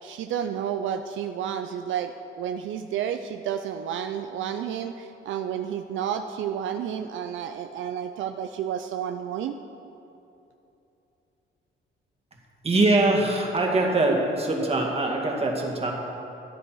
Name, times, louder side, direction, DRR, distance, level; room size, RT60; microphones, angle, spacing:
voice 1, 0.0-9.6, right 9 dB, 75° right, 7 dB, 0.5 m, -31 dB
voice 2, 12.6-15.9, right 2 dB, 30° right, 0 dB, 2.2 m, -23 dB
13.0 x 10.0 x 4.7 m, 2.9 s
cardioid pair, 90°, 20 cm